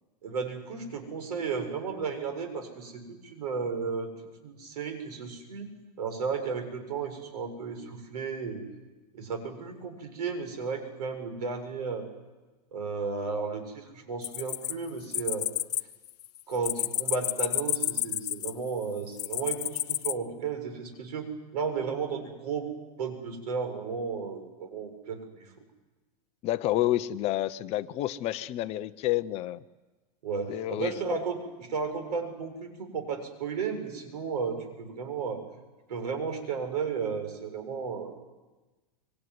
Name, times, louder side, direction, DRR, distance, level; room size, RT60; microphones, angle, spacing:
voice 1, 0.2-4.1 4.4-5.7 6.0-8.6 9.1-12.1 12.7-15.5 16.5-22.7 23.0-25.5 30.2-35.4 35.9-38.2, right 5 dB, 80° right, 6 dB, 7.2 m, -34 dB
sound 1, 14.2-15.8 16.1-18.7 19.2-20.1, left 12 dB, 80° left, 0.9 m, -30 dB
voice 2, 26.4-29.6 30.5-31.2, left 14 dB, 30° left, 12 dB, 0.8 m, -29 dB
25.5 x 24.0 x 9.7 m, 1.2 s
supercardioid pair, 150°, 20 cm